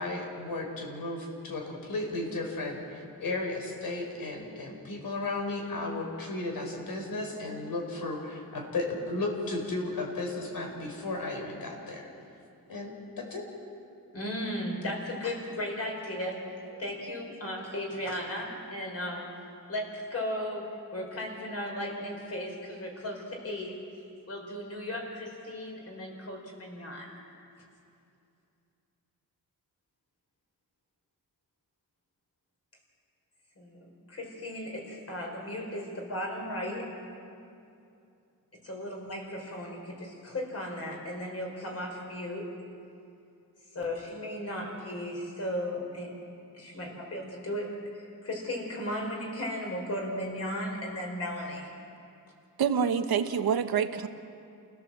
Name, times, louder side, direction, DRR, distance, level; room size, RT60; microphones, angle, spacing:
voice 1, 0.0-12.1 12.7-13.4, left 2 dB, 70° left, 1 dB, 4.6 m, -34 dB
voice 2, 14.1-19.3 19.7-23.8 24.3-27.2 33.6-36.9 38.6-42.5 43.7-46.1 46.5-51.7, left 1 dB, 40° left, 0 dB, 5.0 m, -36 dB
voice 3, 52.6-54.1, right 7 dB, 80° right, 7 dB, 1.3 m, -26 dB
29.5 x 16.5 x 7.6 m, 2.6 s
wide cardioid pair, 170°, 36 cm